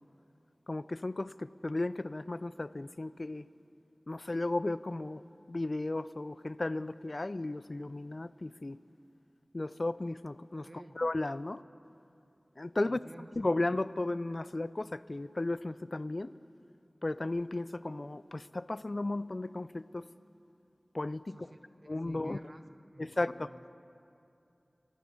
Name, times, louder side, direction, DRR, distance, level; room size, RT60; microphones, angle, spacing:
voice 1, 0.7-3.5 4.1-5.2 5.5-8.8 9.5-10.7 11.0-11.6 12.6-13.0 13.4-16.3 17.0-20.1 20.9-21.4 21.9-22.4 23.0-23.5, left 2 dB, 50° left, 16 dB, 0.3 m, -34 dB
voice 2, 10.6-11.0 12.8-13.3 21.3-22.6 22.9-23.6, right 1 dB, 45° right, 7 dB, 1.0 m, -53 dB
14.0 x 10.5 x 9.7 m, 2.7 s
wide cardioid pair, 55°, 0 cm